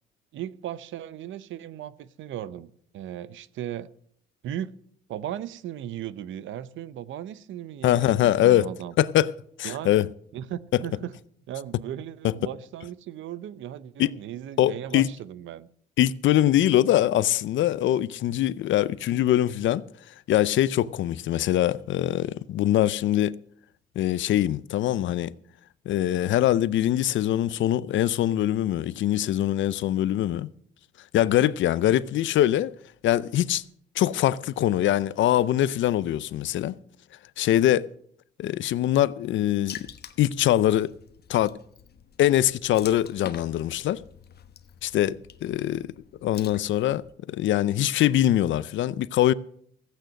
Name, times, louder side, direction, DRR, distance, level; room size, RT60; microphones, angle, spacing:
voice 1, 0.3-3.9 4.4-4.7 5.1-8.9 9.6-9.9 10.3-11.1 11.5-15.7, right 11 dB, 75° right, 0.7 m, -36 dB
voice 2, 7.8-8.7 9.0-9.3 9.6-10.1 12.2-12.3 14.0-14.1 14.6-15.1 16.0-19.8 20.3-23.3 24.0-25.3 25.9-30.5 31.1-32.7 33.0-33.6 34.0-36.7 37.4-37.9 38.4-39.8 40.2-40.9 41.3-41.5 42.2-44.0 44.8-45.9 46.2-49.3, left 12 dB, 70° left, 0.6 m, -23 dB
Water / Splash splatter, 39.7-47.1, left 8 dB, 55° left, 1.0 m, -46 dB
15.0 x 9.1 x 6.4 m
cardioid pair, 90°, 20 cm